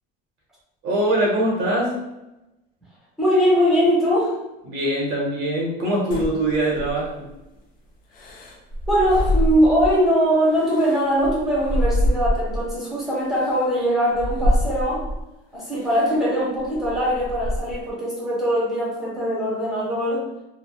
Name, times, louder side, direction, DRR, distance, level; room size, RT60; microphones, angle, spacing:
voice 1, 0.8-1.9 4.6-7.3, right 1 dB, 55° right, -3 dB, 0.7 m, -22 dB
voice 2, 3.2-4.4 8.9-15.0 15.5-20.2, equal, ahead, -7 dB, 0.9 m, -21 dB
sound 1, 6.1-7.3 8.1-10.1 10.5-12.8 13.4-13.5 14.1-15.3 15.8-16.2 16.6-17.9, equal, 40° left, 0.5 m, -25 dB
2.9 x 2.0 x 2.2 m, 0.96 s
cardioid pair, 145°, 21 cm